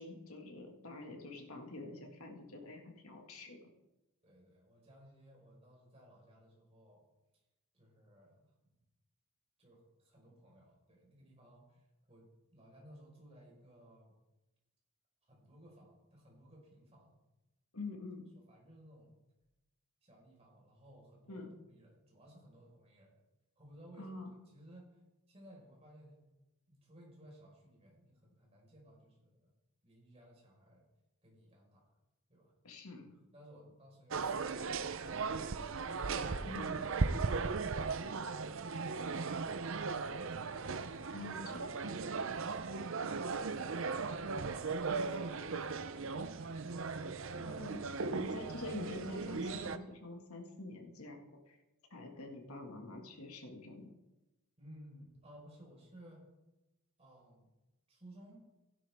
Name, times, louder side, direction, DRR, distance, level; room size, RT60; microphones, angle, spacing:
voice 1, 0.0-3.7 17.7-18.3 21.3-21.5 24.0-24.3 32.6-33.1 36.4-36.8 41.1-41.9 47.4-47.8 48.1-51.2 51.5-51.6 51.9-53.9, left 2 dB, 75° left, 2 dB, 2.0 m, -46 dB
voice 2, 4.2-7.0 7.7-8.5 9.6-14.2 15.3-17.2 18.3-19.2 20.0-23.2 23.6-24.1 24.5-25.0 25.3-26.3 26.7-29.5 29.8-30.9 31.2-31.9 32.3-32.5 33.3-35.9 40.7-41.2 42.2-46.2 54.6-56.2 57.0-57.5 57.9-58.4, equal, 30° right, -3 dB, 4.8 m, -59 dB
sound 1, 34.1-49.8, right 4 dB, 60° right, 0.7 m, -37 dB
16.0 x 11.0 x 3.6 m, 1.0 s
head